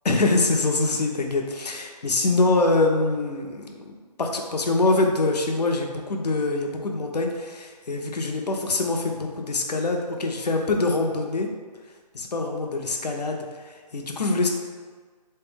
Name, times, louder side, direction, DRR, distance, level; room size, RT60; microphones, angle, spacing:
voice 1, 0.0-3.9 4.2-11.5 12.1-14.5, left 2 dB, 70° left, 2 dB, 0.7 m, -24 dB
3.4 x 3.3 x 3.4 m, 1.5 s
hypercardioid pair, 175°, 21 cm